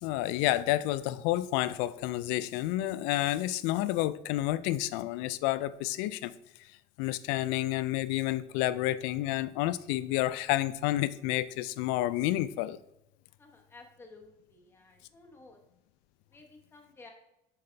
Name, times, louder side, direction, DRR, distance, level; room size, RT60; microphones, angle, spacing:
voice 1, 0.0-6.3 7.0-12.8, left 15 dB, 80° left, 0.4 m, -30 dB
voice 2, 13.4-15.6 16.3-17.1, left 3 dB, 15° left, 0.9 m, -54 dB
7.6 x 5.6 x 3.3 m
cardioid pair, 180°, 17 cm